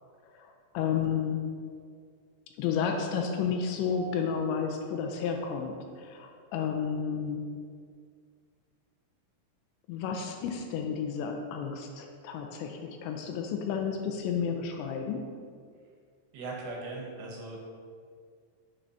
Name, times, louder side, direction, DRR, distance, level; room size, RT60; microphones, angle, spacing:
voice 1, 0.2-1.4 2.6-7.5 9.9-15.4, left 6 dB, 80° left, 3 dB, 2.7 m, -32 dB
voice 2, 16.3-17.6, right 3 dB, 80° right, -1 dB, 2.9 m, -39 dB
8.1 x 7.3 x 2.6 m, 2.1 s
omnidirectional pair, 5.4 m